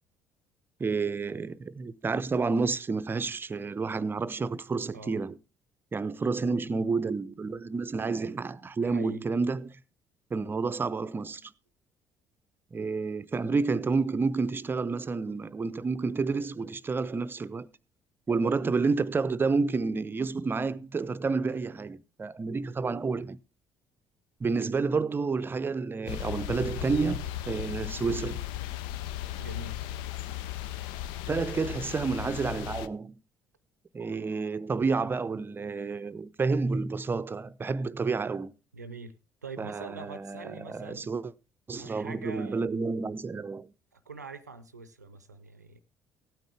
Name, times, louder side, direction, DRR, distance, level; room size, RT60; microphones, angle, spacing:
voice 1, 0.8-5.4 5.9-9.8 10.3-11.5 12.7-17.7 18.3-23.4 24.4-28.4 31.3-33.2 33.9-38.5 39.6-41.3 41.7-43.7, right 4 dB, 25° right, 0.6 m, -30 dB
voice 2, 8.8-9.2 29.4-29.8 38.7-39.1 39.4-41.1 41.7-42.6 43.9-45.8, right 3 dB, 85° right, 0.6 m, -43 dB
sound 1, 26.1-32.9, left 12 dB, 60° left, 0.5 m, -36 dB
16.0 x 9.1 x 3.4 m
figure-of-eight pair, 50°, 9 cm